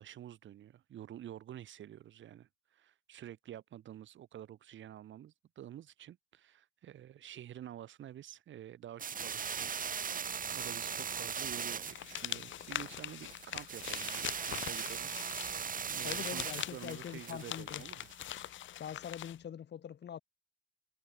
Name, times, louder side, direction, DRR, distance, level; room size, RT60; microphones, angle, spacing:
voice 1, 0.0-15.1 15.9-18.1, right 11 dB, 70° right, 6.4 m, -49 dB
sound 1, 9.0-18.4, right 7 dB, 45° right, 2.1 m, -39 dB
sound 2, 11.9-19.4, left 12 dB, 75° left, 2.1 m, -43 dB
voice 2, 16.0-17.9 18.8-20.2, left 9 dB, 60° left, 7.5 m, -43 dB
cardioid pair, 90°, 20 cm